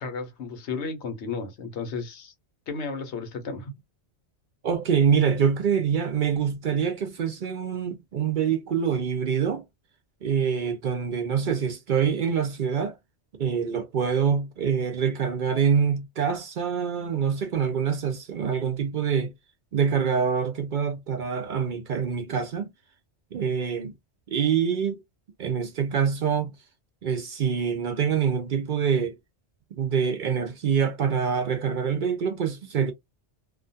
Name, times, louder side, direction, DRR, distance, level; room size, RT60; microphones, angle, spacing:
voice 1, 0.0-2.3 2.7-3.7, left 4 dB, 85° left, 1.1 m, -33 dB
voice 2, 4.6-9.6 10.2-13.0 13.4-19.3 19.7-22.7 23.3-23.9 24.3-25.0 25.4-26.5 27.0-29.1 29.7-32.9, right 7 dB, 60° right, 0.6 m, -25 dB
2.4 x 2.2 x 2.6 m
omnidirectional pair, 1.1 m